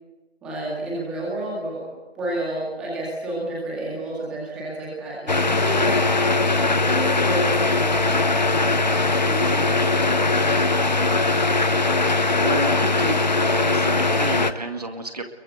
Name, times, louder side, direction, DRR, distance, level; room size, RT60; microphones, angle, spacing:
voice 1, 0.4-1.8 2.1-6.3 6.5-8.8 9.2-10.7 11.1-11.9, right 1 dB, 5° right, -6 dB, 2.0 m, -31 dB
sound 1, 5.3-14.5, left 3 dB, 45° left, 1.1 m, -20 dB
voice 2, 12.4-15.2, right 2 dB, 40° right, 6 dB, 2.2 m, -31 dB
25.5 x 22.5 x 8.1 m, 1.2 s
figure-of-eight pair, 165°, 31 cm